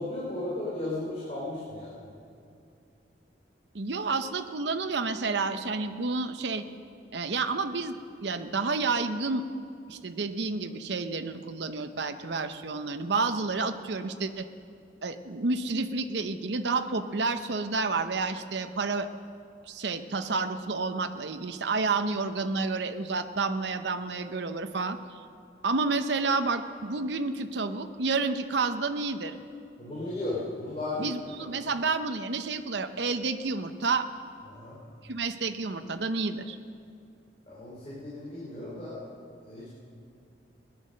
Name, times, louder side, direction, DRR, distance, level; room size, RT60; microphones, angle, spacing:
voice 1, 0.0-2.0 29.8-31.2 34.5-34.8 37.5-39.0 39.4-39.7, left 2 dB, 35° left, -7 dB, 3.2 m, -35 dB
voice 2, 3.7-6.7 7.1-9.4 9.9-14.5 15.0-19.1 19.7-25.0 25.6-29.4 31.0-34.1 35.1-36.6, right 4 dB, 70° right, 9 dB, 0.8 m, -30 dB
18.0 x 11.5 x 6.4 m, 2.5 s
head